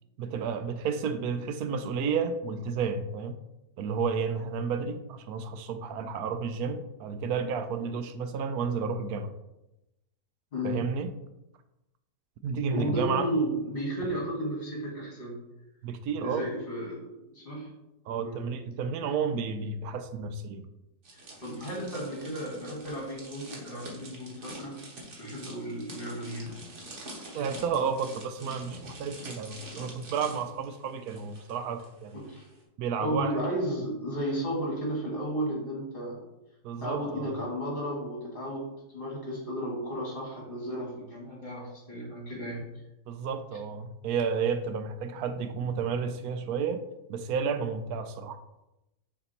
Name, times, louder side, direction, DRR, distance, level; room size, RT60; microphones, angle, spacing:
voice 1, 0.2-3.4 3.8-9.3 10.6-11.1 12.4-13.3 15.8-16.5 18.1-20.6 27.3-32.2 32.8-33.3 36.6-37.3 43.1-46.8 47.1-48.4, right 6 dB, 75° right, 9 dB, 1.0 m, -31 dB
voice 2, 10.5-10.9 12.7-15.4 16.2-17.7 18.2-18.4 21.1-24.8 25.2-26.6 32.1-32.5 33.0-36.2 36.8-42.7, equal, 35° left, -3 dB, 2.1 m, -33 dB
sound 1, 21.0-31.9 32.1-32.4, right 1 dB, 50° right, 1.5 m, -46 dB
6.7 x 3.4 x 4.2 m, 0.92 s
omnidirectional pair, 1.7 m